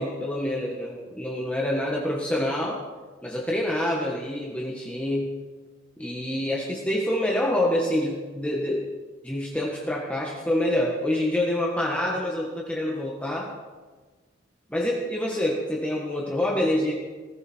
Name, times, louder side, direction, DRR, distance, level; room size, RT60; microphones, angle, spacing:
voice 1, 0.0-2.8 3.2-5.3 6.0-8.8 9.2-13.5 14.7-16.9, left 1 dB, 5° left, -3 dB, 1.7 m, -26 dB
19.5 x 14.5 x 4.6 m, 1.3 s
head